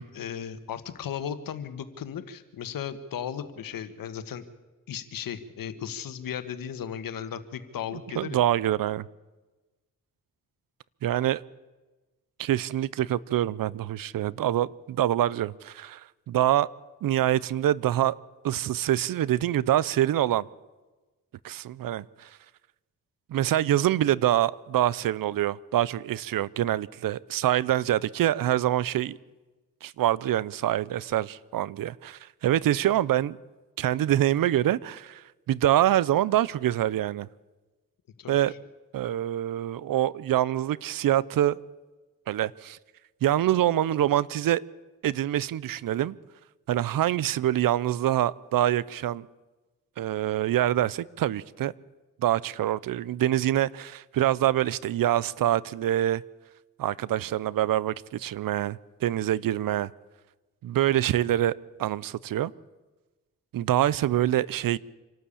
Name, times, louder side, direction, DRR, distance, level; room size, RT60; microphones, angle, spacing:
voice 1, 0.0-4.4 4.9-8.4 38.2-38.6, left 8 dB, 90° left, 1.5 m, -36 dB
voice 2, 7.9-9.1 11.0-11.4 12.4-16.7 17.0-18.2 18.4-20.4 21.4-22.3 23.3-29.2 29.8-33.4 33.8-37.3 38.3-38.5 38.9-41.6 42.3-42.8 43.2-44.6 45.0-46.2 46.7-49.3 50.0-51.7 52.2-56.2 56.8-59.9 60.6-62.5 63.5-64.8, right 12 dB, 85° right, 0.6 m, -25 dB
26.0 x 12.5 x 8.5 m
cardioid pair, 70°, 33 cm